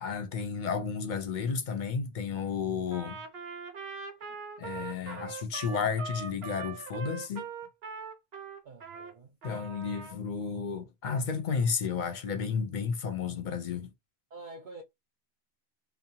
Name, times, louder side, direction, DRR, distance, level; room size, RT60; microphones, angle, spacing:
voice 1, 0.0-3.2 4.6-7.5 9.4-13.9, left 6 dB, 55° left, 0.7 m, -32 dB
Trumpet, 2.9-9.1 9.4-10.2, right 5 dB, 75° right, 1.0 m, -41 dB
voice 2, 8.6-9.4 14.3-14.8, right 2 dB, 55° right, 0.6 m, -47 dB
2.7 x 2.2 x 2.7 m
omnidirectional pair, 1.1 m